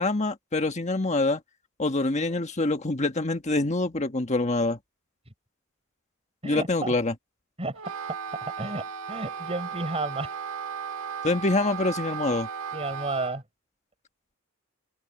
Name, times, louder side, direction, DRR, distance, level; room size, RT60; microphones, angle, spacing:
voice 1, 0.0-1.4 1.8-4.8 6.4-7.1 11.2-12.5, left 2 dB, 35° left, 1.5 m, -25 dB
voice 2, 6.4-6.9 7.6-7.8 8.1-10.4 12.7-13.4, right 2 dB, 30° right, 5.4 m, -32 dB
Wind instrument woodwind instrument, 7.7-13.4, right 7 dB, 80° right, 1.7 m, -36 dB
open air
head